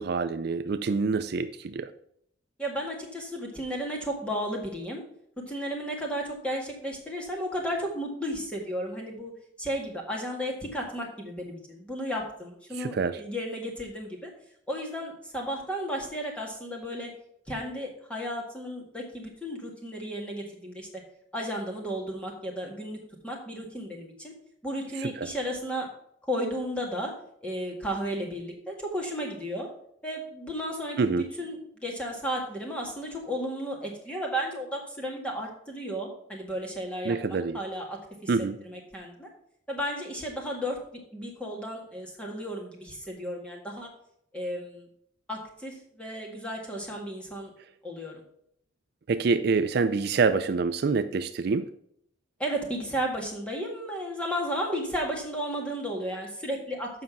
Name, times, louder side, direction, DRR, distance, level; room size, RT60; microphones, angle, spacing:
voice 1, 0.0-1.9 12.8-13.2 25.0-25.3 31.0-31.3 37.1-37.6 38.3-38.6 49.1-51.7, right 4 dB, 55° right, 10 dB, 0.4 m, -26 dB
voice 2, 2.6-5.0 5.5-9.3 9.6-14.3 14.7-17.1 17.5-21.0 21.3-23.0 23.2-24.3 24.6-25.9 26.3-27.1 27.4-29.7 30.0-38.3 38.6-39.3 39.7-40.8 41.1-43.9 44.3-44.9 45.3-47.5 47.8-48.2 52.4-56.9, equal, 5° left, -1 dB, 1.7 m, -33 dB
7.6 x 5.7 x 5.9 m, 0.70 s
head